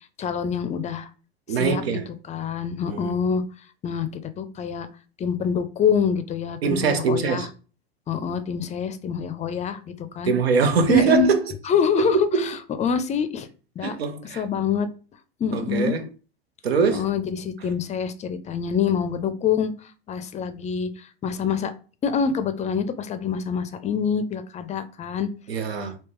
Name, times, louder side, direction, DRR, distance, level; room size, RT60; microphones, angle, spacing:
voice 1, 0.2-1.1 1.5-3.4 3.8-4.1 4.4-4.9 5.2-7.5 8.1-10.3 10.9-11.3 11.6-13.5 13.8-14.0 14.4-14.9 15.4-15.9 16.9-19.7 20.1-21.7 22.0-25.3, left 7 dB, 25° left, 0.4 m, -26 dB
voice 2, 1.5-2.1 2.9-3.1 6.6-7.5 10.3-11.4 12.0-12.6 13.8-14.4 15.5-16.1 16.6-17.1 25.5-26.0, right 6 dB, 85° right, 0.6 m, -22 dB
3.5 x 2.8 x 3.0 m
hypercardioid pair, 85°, 30 cm